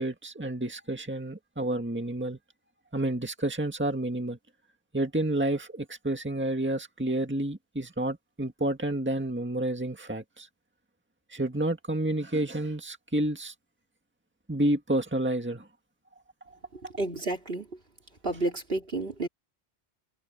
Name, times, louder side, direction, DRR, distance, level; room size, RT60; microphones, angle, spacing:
voice 1, 0.0-2.4 2.9-4.4 4.9-10.5 11.3-13.5 14.5-15.7, right 1 dB, 10° right, 1.9 m, -30 dB
voice 2, 17.0-17.7 18.2-19.3, right 2 dB, 65° right, 3.5 m, -30 dB
omnidirectional pair, 1.0 m